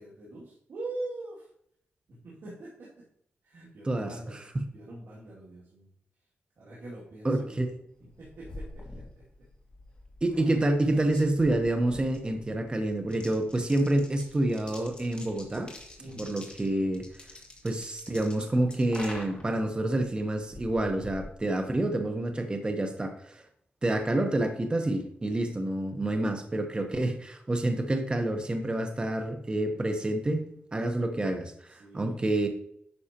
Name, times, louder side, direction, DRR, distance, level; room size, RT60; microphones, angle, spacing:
voice 1, 0.0-1.5 2.1-3.0 3.4-5.9 6.6-7.7 8.0-9.2 16.0-16.3 31.7-32.2, right 2 dB, 75° right, -7 dB, 2.4 m, -43 dB
voice 2, 7.2-7.7 10.2-15.7 16.2-17.1 17.6-23.4 23.8-32.5, right 1 dB, 25° right, 5 dB, 0.9 m, -28 dB
sound 1, 8.0-22.1, left 1 dB, 25° left, 2.1 m, -46 dB
9.7 x 6.3 x 2.9 m, 0.70 s
cardioid pair, 90°, 4 cm